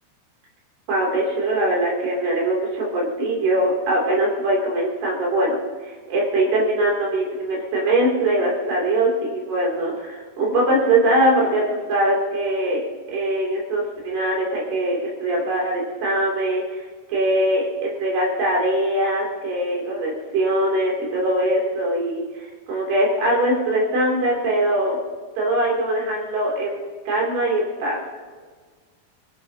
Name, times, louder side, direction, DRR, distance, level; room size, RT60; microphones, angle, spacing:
voice 1, 0.9-12.8 13.1-25.0 25.4-28.0, right 1 dB, 75° right, -3 dB, 4.9 m, -22 dB
25.0 x 17.0 x 2.8 m, 1.5 s
omnidirectional pair, 4.7 m